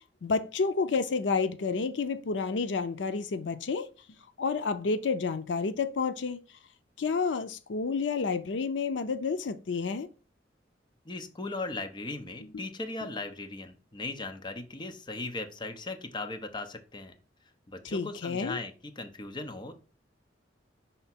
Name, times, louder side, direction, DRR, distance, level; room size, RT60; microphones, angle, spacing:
voice 1, 0.2-3.9 4.4-6.4 7.0-10.1 12.5-12.6 17.8-18.6, left 4 dB, 85° left, 0.5 m, -30 dB
voice 2, 11.0-17.1 17.7-19.7, left 2 dB, 25° left, 0.8 m, -38 dB
5.7 x 3.5 x 5.7 m
head